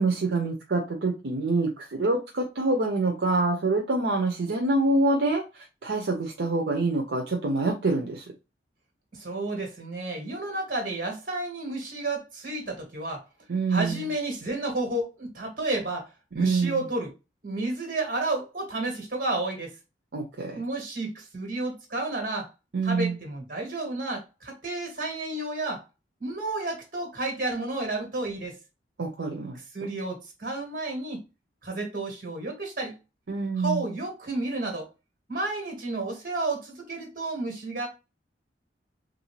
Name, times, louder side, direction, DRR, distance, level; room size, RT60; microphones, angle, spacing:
voice 1, 0.0-8.2 13.5-14.1 16.4-16.9 20.1-20.6 22.7-23.2 29.0-29.6 33.3-33.8, right 3 dB, 70° right, 0.6 m, -26 dB
voice 2, 9.1-13.2 13.7-17.1 17.4-19.7 20.5-22.5 22.8-25.9 26.2-28.5 29.5-31.2 31.6-33.0 33.6-34.9 35.3-37.9, right 2 dB, 50° right, 1.5 m, -31 dB
3.2 x 2.6 x 3.0 m
head